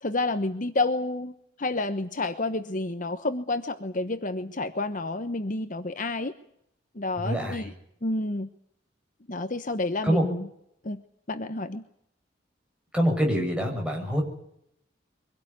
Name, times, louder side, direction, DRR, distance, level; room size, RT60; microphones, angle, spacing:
voice 1, 0.0-1.3 1.6-6.3 6.9-7.7 8.0-8.5 9.3-10.5 10.8-11.0 11.3-11.8, left 2 dB, 40° left, 9 dB, 1.1 m, -29 dB
voice 2, 7.2-7.7 10.0-10.2 12.9-14.2, equal, 5° right, 1 dB, 6.8 m, -25 dB
24.0 x 17.5 x 9.5 m, 0.72 s
head